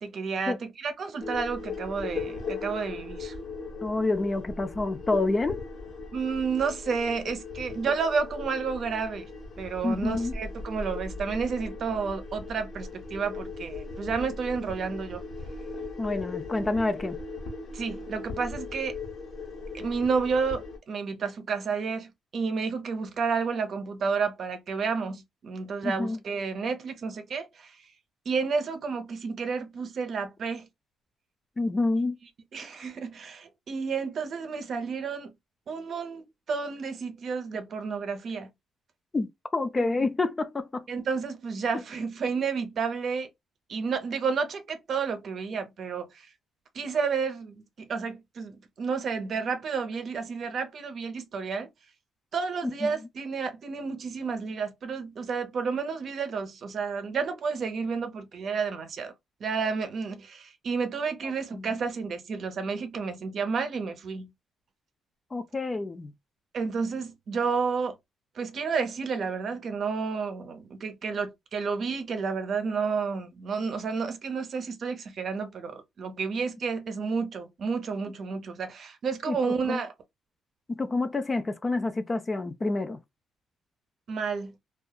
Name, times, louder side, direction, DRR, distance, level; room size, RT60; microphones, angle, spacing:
voice 1, 0.0-3.3 6.1-9.3 9.6-15.2 17.7-19.0 19.7-27.8 28.3-30.7 32.5-35.3 35.7-38.5 39.8-39.9 40.9-43.3 43.7-46.3 46.7-51.7 52.3-59.1 59.4-64.3 66.5-67.9 68.4-79.9 84.1-84.5, right 5 dB, 60° right, 0.6 m, -31 dB
sound 1, 1.2-20.8, left 3 dB, 60° left, 1.1 m, -38 dB
voice 2, 3.8-5.6 9.8-10.4 16.0-17.2 25.8-26.2 31.6-32.2 39.1-40.9 41.7-41.8 52.8-52.9 61.2-61.8 65.3-66.1 79.3-79.9 80.7-83.0, left 2 dB, 25° left, 0.4 m, -28 dB
2.6 x 2.3 x 2.2 m
cardioid pair, 90°, 0 cm